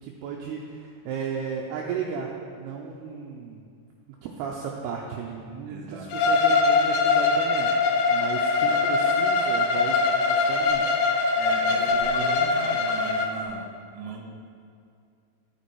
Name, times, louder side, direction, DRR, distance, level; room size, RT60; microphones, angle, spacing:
voice 1, 0.0-3.6 4.2-10.0 10.2-11.0, right 6 dB, 80° right, 0 dB, 2.4 m, -35 dB
voice 2, 5.7-6.1 11.4-14.2, right 3 dB, 65° right, 0 dB, 2.4 m, -37 dB
Bowed string instrument, 6.1-13.3, left 4 dB, 80° left, 2.4 m, -22 dB
11.0 x 6.9 x 4.7 m, 2.3 s
omnidirectional pair, 5.1 m